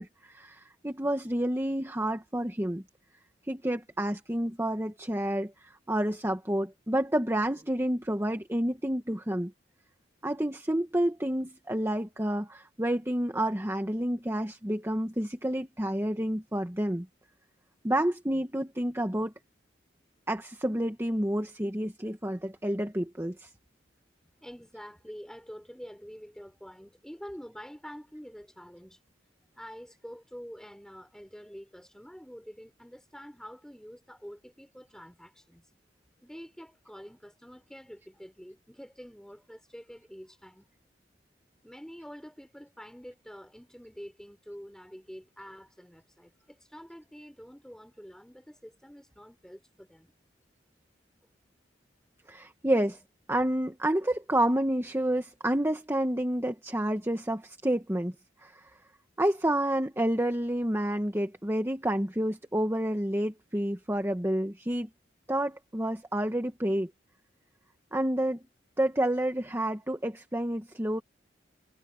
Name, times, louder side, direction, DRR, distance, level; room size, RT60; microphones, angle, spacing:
voice 1, 0.0-2.8 3.4-9.5 10.2-17.1 17.8-19.3 20.3-23.5 52.3-53.0 53.3-58.1 58.4-58.8 59.2-64.9 65.3-66.9 67.9-68.4 68.8-71.0, right 1 dB, 15° right, 1.3 m, -29 dB
voice 2, 24.4-29.0 29.6-35.7 36.2-40.7 41.6-50.1, equal, 5° left, 3.5 m, -47 dB
head